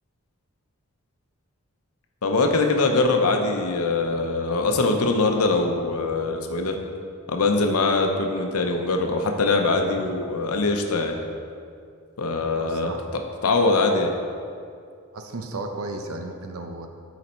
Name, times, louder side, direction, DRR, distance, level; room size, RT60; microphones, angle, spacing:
voice 1, 2.2-6.8 7.3-11.2 12.2-12.9 13.4-14.1, left 3 dB, 85° left, 4 dB, 0.7 m, -22 dB
voice 2, 12.6-13.0 15.1-16.9, right 2 dB, 75° right, 5 dB, 0.7 m, -34 dB
9.3 x 4.1 x 4.4 m, 2.3 s
head